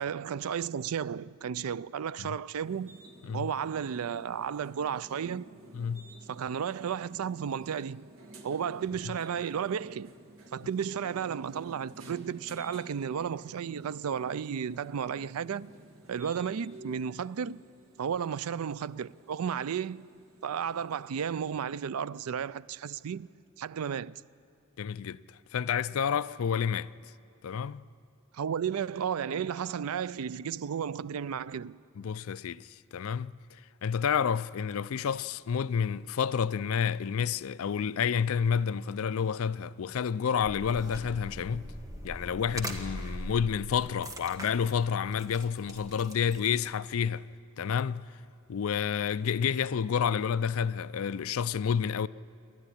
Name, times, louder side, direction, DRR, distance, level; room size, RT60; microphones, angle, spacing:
voice 1, 0.0-3.0 3.3-5.5 6.3-8.0 8.4-10.1 10.5-15.7 16.1-17.6 18.0-20.1 20.4-23.3 23.6-24.2 28.3-31.8, right 7 dB, 80° right, 0.4 m, -33 dB
sound 1, 2.6-21.6, right 1 dB, 65° right, 1.8 m, -53 dB
voice 2, 5.7-6.1 24.8-25.2 25.5-26.9 27.4-27.8 32.0-32.7 32.9-33.3 33.8-41.6 42.0-47.2 47.6-48.1 48.5-52.1, left 7 dB, 70° left, 0.4 m, -29 dB
sound 2, 40.4-46.7, equal, 15° right, 1.6 m, -42 dB
28.0 x 11.5 x 9.9 m
head